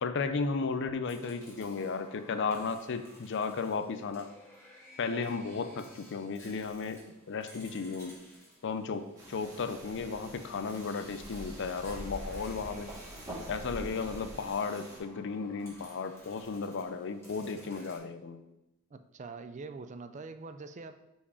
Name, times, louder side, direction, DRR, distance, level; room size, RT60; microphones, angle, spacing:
voice 1, 0.0-4.3 5.0-8.2 8.6-12.9 13.5-18.4, left 4 dB, 60° left, 10 dB, 0.5 m, -34 dB
sound 1, 1.0-9.9 10.7-18.0, left 1 dB, 15° left, 2.3 m, -55 dB
sound 2, 9.2-15.0, right 1 dB, 20° right, 2.3 m, -45 dB
voice 2, 18.9-21.0, right 4 dB, 35° right, 10 dB, 0.4 m, -44 dB
5.7 x 4.5 x 4.8 m, 0.93 s
head